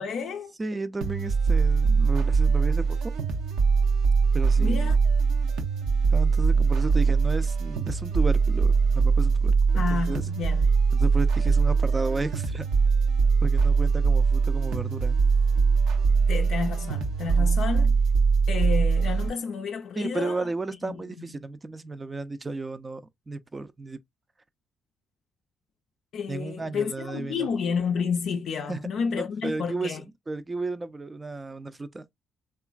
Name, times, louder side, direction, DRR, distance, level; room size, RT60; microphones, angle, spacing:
voice 1, 0.0-0.5 4.6-5.0 9.8-10.7 16.3-18.0 18.5-20.5 20.8-21.4 26.1-30.0, left 6 dB, 70° left, 0.4 m, -30 dB
voice 2, 0.6-3.0 4.3-4.8 6.1-10.3 10.9-12.6 13.4-15.2 17.2-17.5 20.0-23.0 23.3-24.0 26.3-27.5 28.7-28.8 29.1-30.0 30.3-32.0, right 3 dB, 25° right, 0.4 m, -33 dB
sound 1, 1.0-19.3, right 5 dB, 85° right, 0.6 m, -22 dB
3.0 x 2.3 x 2.3 m
supercardioid pair, 70°, 0 cm